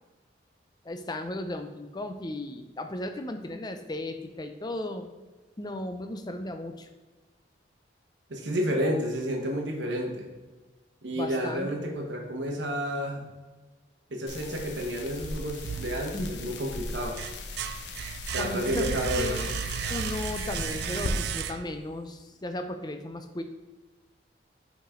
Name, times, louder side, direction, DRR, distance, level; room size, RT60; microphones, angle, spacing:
voice 1, 0.8-5.1 5.6-6.9 11.1-12.0 16.1-16.3 18.4-19.5 19.9-23.4, left 1 dB, 25° left, 7 dB, 0.5 m, -35 dB
voice 2, 8.3-10.3 11.0-13.2 14.1-17.2 18.3-19.4, equal, 80° right, 1 dB, 1.2 m, -30 dB
sound 1, 14.3-21.1, left 2 dB, 70° left, 0.7 m, -38 dB
sound 2, 15.6-16.5 16.9-21.9, right 7 dB, 60° right, 0.3 m, -34 dB
5.2 x 5.1 x 3.7 m, 1.2 s
head